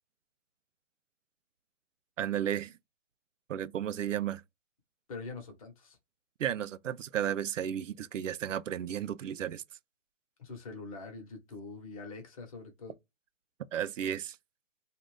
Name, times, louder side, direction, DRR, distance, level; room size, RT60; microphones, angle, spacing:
voice 1, 2.2-2.8 3.5-4.4 6.4-9.6 13.7-14.4, right 10 dB, 85° right, 0.5 m, -33 dB
voice 2, 5.1-6.0 10.4-12.9, left 3 dB, 30° left, 1.0 m, -44 dB
2.5 x 2.5 x 3.2 m
hypercardioid pair, 160°, 36 cm